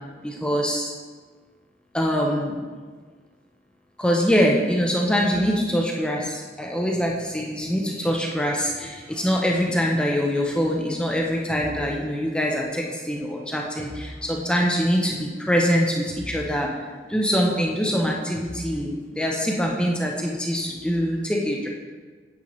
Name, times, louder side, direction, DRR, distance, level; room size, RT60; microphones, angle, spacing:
voice 1, 0.2-0.9 1.9-2.6 4.0-16.7 17.1-21.7, equal, 5° left, -1 dB, 0.6 m, -24 dB
8.6 x 5.5 x 3.1 m, 1.5 s
head